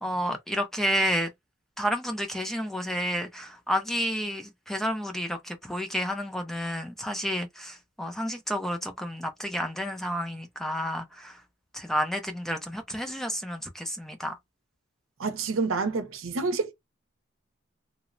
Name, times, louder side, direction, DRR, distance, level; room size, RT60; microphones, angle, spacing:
voice 1, 0.0-1.3 1.8-11.4 11.7-14.4, equal, ahead, 0.4 m, -30 dB
voice 2, 15.2-16.7, right 4 dB, 90° right, 0.6 m, -28 dB
2.9 x 2.0 x 2.5 m
head